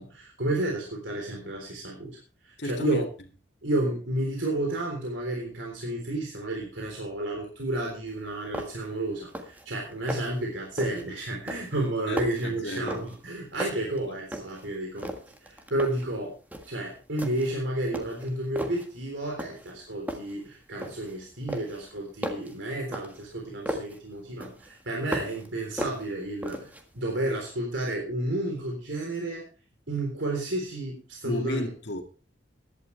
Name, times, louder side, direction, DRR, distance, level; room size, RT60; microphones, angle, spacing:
voice 1, 0.0-2.2 2.4-3.0 3.6-16.3 16.7-29.5 29.9-31.7, right 1 dB, 85° right, 3.7 m, -31 dB
voice 2, 2.6-3.0 12.1-13.0 13.5-13.9 31.2-32.0, left 1 dB, 65° left, 2.1 m, -34 dB
sound 1, 8.1-8.2 8.5-8.9 9.2-9.6 9.9-10.4 10.8-11.1 11.5-13.3 13.6-14.7 15.0-16.1 16.5-16.8 17.2-17.6 17.9-18.9 19.4-19.8 20.1-21.2 21.5-24.0 24.4-25.5 25.8-26.8, equal, 10° right, 1.6 m, -36 dB
15.5 x 11.5 x 3.3 m
head